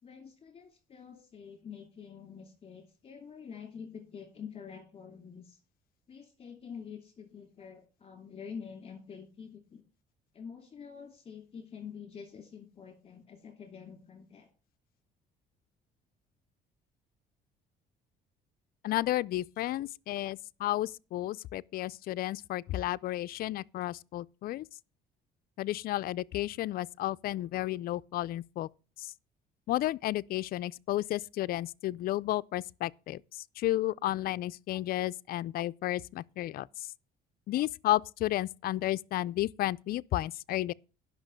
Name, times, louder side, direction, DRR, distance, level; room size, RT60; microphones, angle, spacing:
voice 1, 0.0-5.6 6.1-9.8 10.3-14.5, left 6 dB, 35° left, 2.8 m, -47 dB
voice 2, 18.8-24.6 25.6-28.7 29.0-29.1 29.7-33.2 33.6-36.7 37.5-40.7, left 15 dB, 60° left, 0.4 m, -32 dB
10.5 x 6.1 x 6.4 m
cardioid pair, 110°, 17 cm